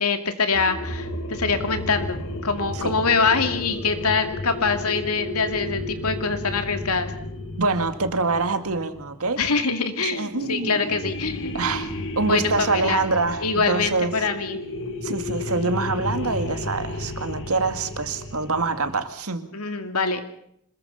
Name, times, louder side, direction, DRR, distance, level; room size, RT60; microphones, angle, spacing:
voice 1, 0.0-7.1 9.4-11.7 12.2-13.0 13.4-14.6 19.5-20.2, left 4 dB, 85° left, 7 dB, 2.6 m, -24 dB
sound 1, 0.5-9.6 10.3-19.0, left 2 dB, 60° left, 2.3 m, -33 dB
voice 2, 7.6-9.4 10.0-10.8 11.5-14.1 15.0-19.5, right 3 dB, 75° right, 8 dB, 2.1 m, -25 dB
26.5 x 21.5 x 5.7 m, 0.71 s
head